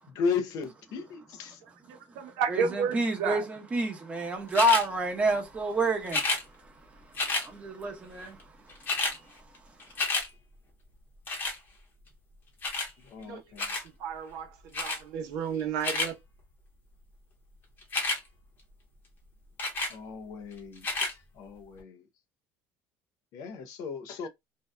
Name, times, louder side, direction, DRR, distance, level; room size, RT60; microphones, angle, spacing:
voice 1, 0.1-1.6 13.0-13.7 19.9-22.0 23.3-24.3, left 5 dB, 60° left, 0.5 m, -35 dB
voice 2, 1.9-3.4 13.2-13.7 14.0-16.1, right 7 dB, 70° right, 0.7 m, -32 dB
voice 3, 2.5-6.2 7.4-8.4, right 1 dB, 20° right, 0.8 m, -28 dB
sound 1, 4.5-4.9 6.1-6.4 7.1-7.5 8.4-8.5 8.7-9.2 9.5-10.3 11.3-11.6 12.6-12.9 13.6-13.9 14.7-15.0 15.6-16.1 17.8-18.2 19.6-19.9 20.8-21.1 21.8-21.9, left 3 dB, 30° left, 0.9 m, -30 dB
2.7 x 2.2 x 2.2 m
cardioid pair, 125°, 7 cm